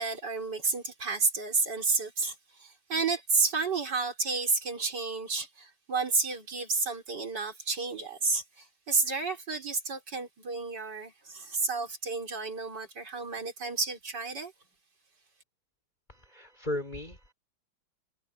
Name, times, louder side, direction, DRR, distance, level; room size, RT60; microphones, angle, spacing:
voice 1, 0.0-14.5, right 4 dB, 55° right, 4.6 m, -31 dB
voice 2, 16.1-17.3, left 1 dB, 20° left, 4.2 m, -36 dB
omnidirectional pair, 2.2 m